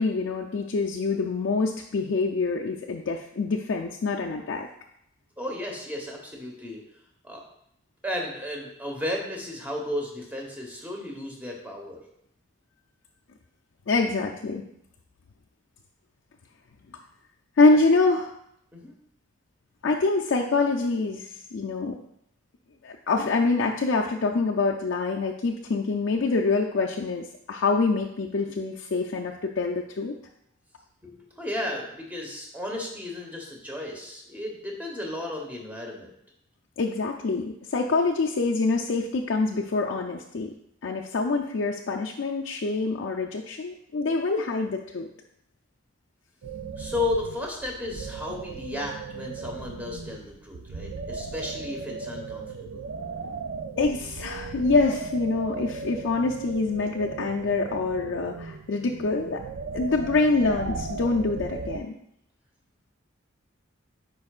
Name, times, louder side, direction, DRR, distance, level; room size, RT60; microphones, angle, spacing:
voice 1, 0.0-4.7 13.9-14.7 17.6-18.3 19.8-22.0 22.8-30.1 36.8-40.5 40.8-45.1 53.8-59.4 59.7-61.9, left 3 dB, 65° left, -1 dB, 0.5 m, -25 dB
voice 2, 5.4-6.8 7.2-7.4 8.0-12.0 18.7-18.9 31.0-36.1 46.8-52.9, left 1 dB, 10° right, 0 dB, 1.1 m, -34 dB
sound 1, 46.4-61.8, right 5 dB, 70° right, 0.4 m, -37 dB
9.6 x 4.6 x 2.4 m, 0.74 s
head